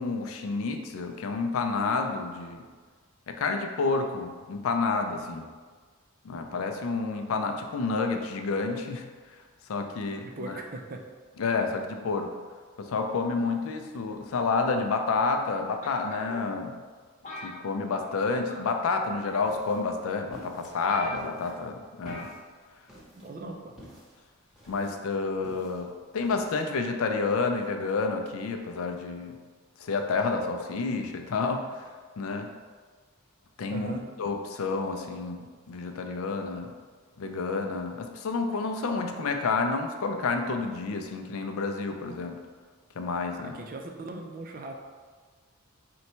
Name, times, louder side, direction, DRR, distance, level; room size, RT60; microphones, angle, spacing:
voice 1, 0.0-2.6 3.3-5.5 6.2-9.0 9.7-10.6 11.4-12.4 12.8-16.7 17.4-22.3 24.7-29.3 29.8-31.8 32.2-32.5 33.6-36.7 37.2-42.4 43.0-43.5, left 4 dB, 75° left, 5 dB, 0.4 m, -29 dB
voice 2, 10.2-11.1 23.1-23.7 33.7-34.0 43.4-44.7, right 2 dB, 40° right, 3 dB, 0.4 m, -39 dB
sound 1, 15.8-16.5 17.2-18.2 18.5-18.8 19.6-19.7 20.3-20.4 20.6-20.7 20.9-21.5 22.1-22.4 22.7-22.8, left 1 dB, 35° left, 0.8 m, -41 dB
sound 2, 19.4-26.6, equal, 5° right, 0.8 m, -51 dB
3.9 x 2.2 x 4.3 m, 1.5 s
head